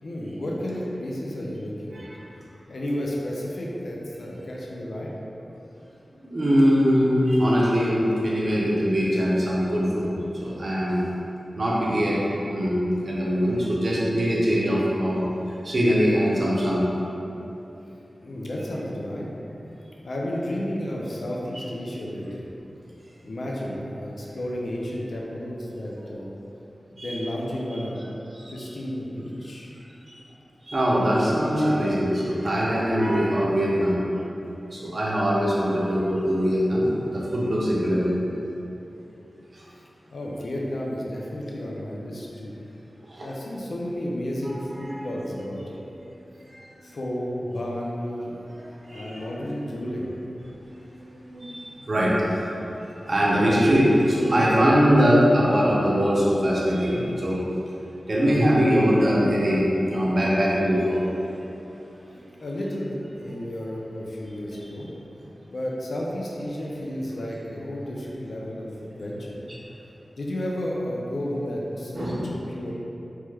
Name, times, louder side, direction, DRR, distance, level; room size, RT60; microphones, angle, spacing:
voice 1, 0.0-2.0 2.7-5.1 18.2-19.3 20.0-22.5 23.2-26.3 26.9-28.0 28.5-29.7 39.7-39.8 40.1-42.5 43.2-45.8 46.8-48.5 48.9-50.1 62.4-64.9 65.5-69.4 70.2-72.7, equal, 75° left, -3 dB, 0.4 m, -32 dB
voice 2, 6.2-10.1 10.4-11.0 11.6-12.2 12.5-15.2 15.6-16.8 27.0-27.2 28.4-28.6 30.7-34.0 34.7-38.1 43.1-43.3 44.8-45.0 48.5-49.3 50.5-50.6 51.2-52.5 52.8-57.4 58.1-61.0 71.9-72.2, equal, 55° right, -6 dB, 0.6 m, -22 dB
3.0 x 2.2 x 3.2 m, 2.9 s
wide cardioid pair, 55°, 0 cm